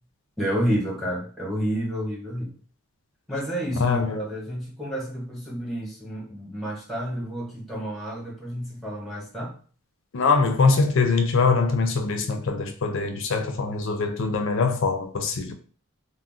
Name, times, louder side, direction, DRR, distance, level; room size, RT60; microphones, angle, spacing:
voice 1, 0.4-2.5 3.3-9.6, equal, ahead, 0.8 m, -30 dB
voice 2, 3.8-4.2 10.1-15.5, left 4 dB, 55° left, 0.4 m, -23 dB
2.4 x 2.0 x 3.6 m
head